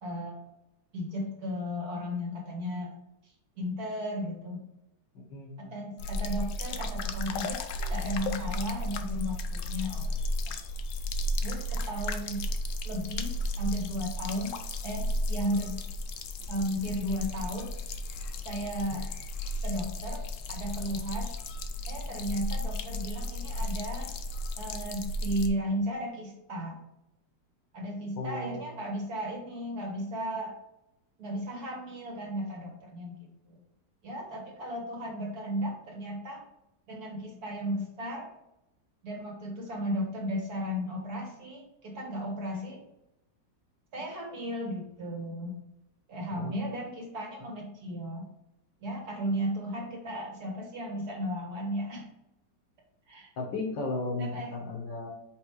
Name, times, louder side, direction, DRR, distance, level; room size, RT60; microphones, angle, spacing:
voice 1, 0.0-0.4 0.9-2.9 3.6-4.6 5.6-10.2 10.5-10.6 11.4-12.5 12.8-14.5 14.8-15.8 16.5-17.7 18.5-19.1 19.6-20.2 20.5-21.3 21.9-24.1 24.6-26.8 27.7-30.5 31.2-33.6 34.0-36.4 36.9-38.3 39.0-42.8 43.9-45.5 46.1-48.3 48.8-52.1 53.1-53.3 54.2-54.6, equal, 60° right, 0 dB, 2.0 m, -35 dB
voice 2, 5.1-5.7 18.9-19.0 28.2-28.6 46.4-46.5 53.4-55.1, left 2 dB, 85° left, 1 dB, 2.2 m, -35 dB
sound 1, 6.0-25.5, left 1 dB, 70° left, 0.7 m, -34 dB
5.5 x 4.2 x 4.7 m, 0.87 s
omnidirectional pair, 1.9 m